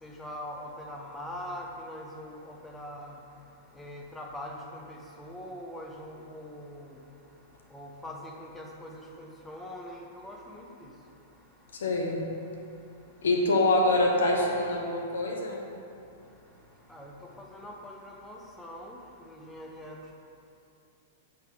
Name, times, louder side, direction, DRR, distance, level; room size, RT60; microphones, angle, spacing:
voice 1, 0.0-3.2 3.8-6.9 7.7-10.7 16.9-17.1 17.4-19.0 19.3-20.2, left 1 dB, 10° left, 0 dB, 0.8 m, -42 dB
voice 2, 11.7-12.2 13.2-15.7, left 2 dB, 75° left, 1 dB, 0.9 m, -25 dB
7.7 x 3.5 x 4.7 m, 2.7 s
hypercardioid pair, 105°, 0 cm